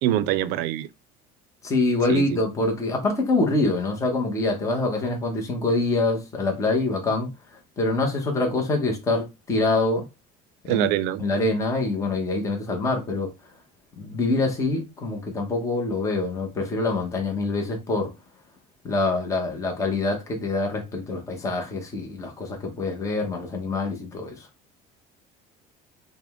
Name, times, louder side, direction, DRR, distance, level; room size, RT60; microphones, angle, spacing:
voice 1, 0.0-0.9 2.1-2.4 10.7-11.2, right 13 dB, 75° right, 0.4 m, -24 dB
voice 2, 1.6-7.3 7.8-10.0 10.6-10.9 11.2-13.3 14.0-18.1 18.8-24.5, left 2 dB, 20° left, 0.8 m, -25 dB
4.9 x 2.1 x 3.4 m
cardioid pair, 175°, 17 cm